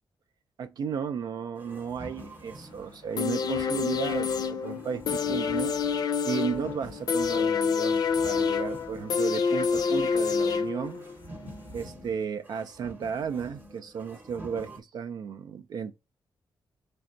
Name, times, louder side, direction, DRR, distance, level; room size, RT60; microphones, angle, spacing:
voice 1, 0.6-5.7 6.2-11.0 11.7-15.9, right 7 dB, 60° right, 0.4 m, -34 dB
sound 1, 1.5-14.8, right 1 dB, 25° right, 0.8 m, -47 dB
sound 2, 3.2-11.1 11.5-11.6, left 6 dB, 55° left, 0.5 m, -27 dB
3.9 x 3.3 x 2.5 m
wide cardioid pair, 150°, 8 cm